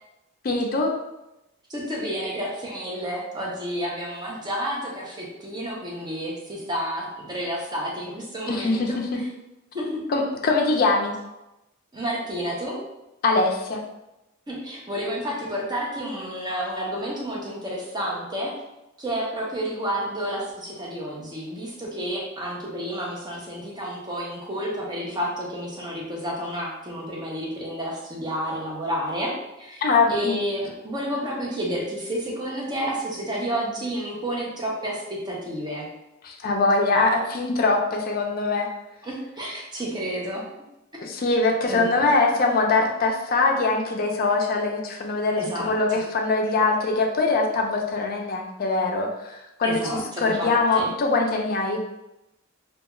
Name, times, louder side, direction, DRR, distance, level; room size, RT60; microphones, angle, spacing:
voice 1, 0.4-0.9 8.5-8.9 10.1-11.1 13.2-13.8 29.8-30.3 36.2-38.7 41.0-51.8, left 3 dB, 45° left, 2 dB, 0.4 m, -22 dB
voice 2, 1.7-9.2 9.7-10.0 11.9-12.8 14.5-18.5 19.0-29.3 29.6-29.8 30.1-35.9 39.0-40.4 41.7-42.4 45.4-45.7 49.6-50.9, equal, 20° right, -3 dB, 0.6 m, -30 dB
2.3 x 2.2 x 2.9 m, 0.92 s
head